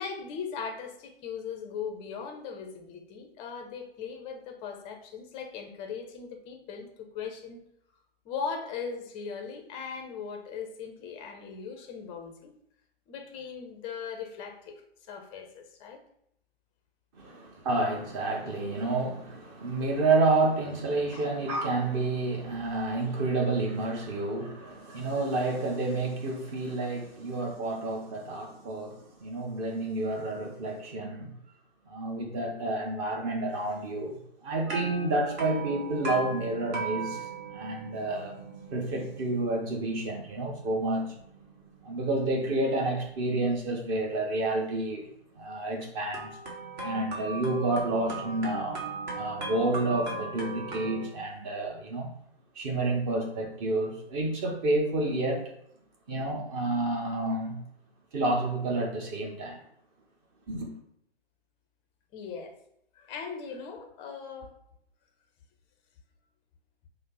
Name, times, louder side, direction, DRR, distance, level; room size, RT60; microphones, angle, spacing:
voice 1, 0.0-7.6 8.2-12.5 13.1-14.8 15.1-16.0 21.1-21.3 62.1-62.6 63.0-64.6, left 6 dB, 20° left, 0.5 m, -39 dB
voice 2, 17.1-31.3 31.9-38.4 38.7-41.1 41.8-45.1 45.4-46.3 46.8-48.8 49.1-52.1 52.5-55.5 56.1-57.6 58.1-59.6 60.5-60.7, right 2 dB, 30° right, 0.9 m, -29 dB
sound 1, 34.7-44.7 46.1-51.1, right 3 dB, 45° right, 1.3 m, -38 dB
5.2 x 2.0 x 3.9 m
figure-of-eight pair, 120°, 31 cm